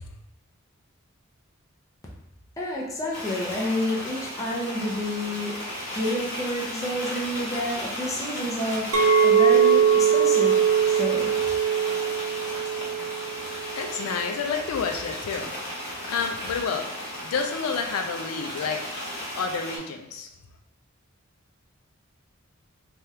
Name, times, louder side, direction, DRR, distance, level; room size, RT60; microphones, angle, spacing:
voice 1, 2.6-5.6 5.9-8.9 9.2-10.6 10.9-11.3, left 1 dB, 15° left, -4 dB, 0.6 m, -29 dB
sound 1, 3.1-19.8, left 1 dB, 60° left, 1.3 m, -35 dB
Chink clink, 8.9-14.1, right 7 dB, 80° right, 0.5 m, -21 dB
voice 2, 13.7-15.5 15.8-16.9 17.2-18.9 19.3-20.3, left 5 dB, 90° left, 5 dB, 0.4 m, -29 dB
3.4 x 2.3 x 2.7 m, 0.83 s
head